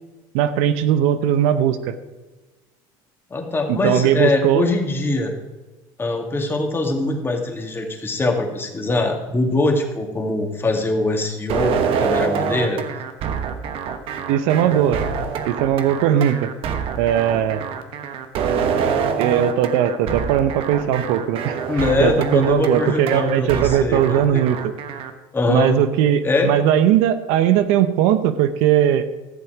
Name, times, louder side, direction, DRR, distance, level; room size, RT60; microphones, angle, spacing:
voice 1, 0.3-1.9 3.7-4.7 14.3-15.0 15.4-16.5 17.0-17.6 19.2-21.6 22.0-24.7 25.5-29.0, right 10 dB, 75° right, 11 dB, 0.8 m, -19 dB
voice 2, 3.3-5.3 6.0-12.8 21.7-24.4 25.3-25.8 26.2-26.5, left 2 dB, 20° left, 3 dB, 2.1 m, -22 dB
sound 1, 11.5-25.1, right 6 dB, 55° right, 1.2 m, -25 dB
14.5 x 7.0 x 5.0 m, 1.2 s
supercardioid pair, 105°, 11 cm